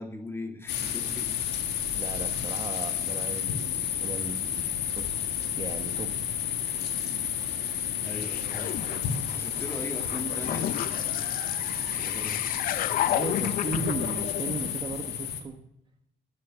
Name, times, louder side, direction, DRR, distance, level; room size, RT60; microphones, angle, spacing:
voice 1, 0.0-1.3 8.0-11.2 11.9-12.6, left 1 dB, 15° left, 3 dB, 2.3 m, -40 dB
sound 1, 0.7-15.4, left 9 dB, 90° left, 1.7 m, -31 dB
voice 2, 1.9-4.5 4.9-6.1 13.0-15.6, right 5 dB, 30° right, 6 dB, 1.1 m, -37 dB
sound 2, 8.1-15.1, left 13 dB, 60° left, 0.5 m, -33 dB
13.5 x 9.6 x 6.9 m, 0.80 s
cardioid pair, 110°, 17 cm